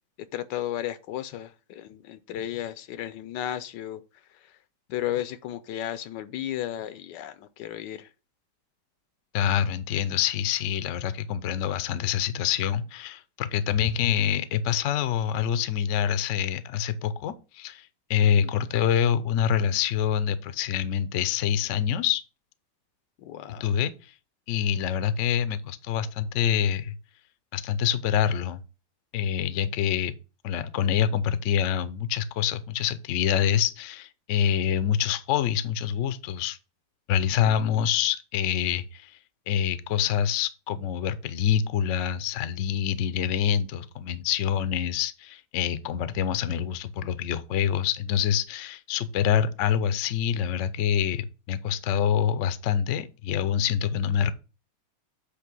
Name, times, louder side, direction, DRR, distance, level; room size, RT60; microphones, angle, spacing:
voice 1, 0.3-4.0 4.9-8.1 18.4-18.7 23.2-23.7 37.6-37.8, left 12 dB, 80° left, 1.3 m, -34 dB
voice 2, 9.3-22.2 23.6-24.1 24.5-27.0 27.5-28.6 29.1-30.1 30.4-36.6 37.1-39.2 39.5-54.3, left 9 dB, 65° left, 0.7 m, -26 dB
8.3 x 2.9 x 6.1 m
omnidirectional pair, 1.9 m